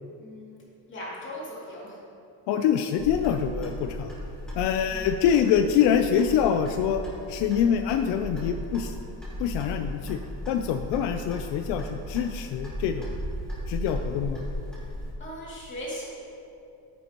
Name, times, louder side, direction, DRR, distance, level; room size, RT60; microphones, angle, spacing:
voice 1, 0.2-0.6 0.9-2.0 4.9-5.1 15.2-16.0, equal, 30° left, -6 dB, 2.5 m, -38 dB
voice 2, 2.5-4.1 4.5-7.0 7.3-9.0 9.4-10.2 10.5-13.2 13.7-14.4, left 8 dB, 80° left, 6 dB, 0.6 m, -25 dB
Clock, 3.0-15.1, equal, ahead, 2.0 m, -36 dB
12.0 x 9.7 x 3.0 m, 2.7 s
cardioid pair, 170°, 41 cm